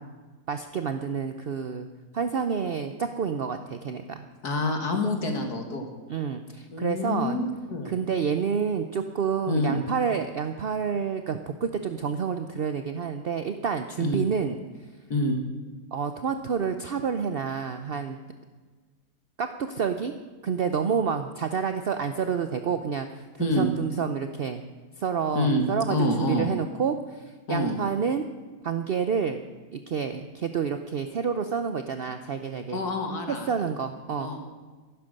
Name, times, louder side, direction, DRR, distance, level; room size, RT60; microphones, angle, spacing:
voice 1, 0.5-1.9 2.1-4.3 6.1-7.4 7.8-14.6 15.9-18.2 19.4-20.1 20.4-24.6 25.0-28.3 28.6-29.4 29.7-32.8 33.3-34.3, right 6 dB, 60° right, 8 dB, 0.6 m, -29 dB
voice 2, 4.4-5.9 6.7-8.0 9.5-9.8 14.0-14.2 15.1-15.4 23.4-23.7 25.3-26.5 27.5-27.8 32.7-33.6 34.2-34.4, left 1 dB, 65° left, 4 dB, 2.3 m, -27 dB
14.5 x 11.5 x 6.5 m, 1.4 s
omnidirectional pair, 1.8 m